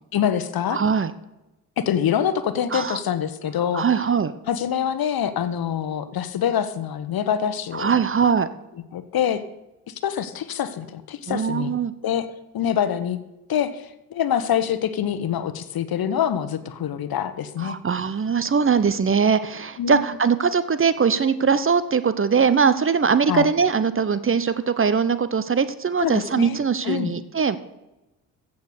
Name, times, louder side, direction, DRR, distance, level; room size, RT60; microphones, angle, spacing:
voice 1, 0.1-0.8 1.8-3.8 4.5-7.9 8.9-9.4 9.9-11.7 12.0-12.3 12.5-13.2 13.5-17.8 19.8-20.0 23.3-23.5 26.0-26.6 26.8-27.1, left 9 dB, 50° left, 12 dB, 1.2 m, -25 dB
voice 2, 0.7-1.1 2.7-3.0 3.7-4.3 7.7-8.5 11.3-11.9 17.6-27.6, right 6 dB, 30° right, 13 dB, 0.9 m, -21 dB
15.0 x 7.0 x 6.7 m, 0.97 s
hypercardioid pair, 50°, 45 cm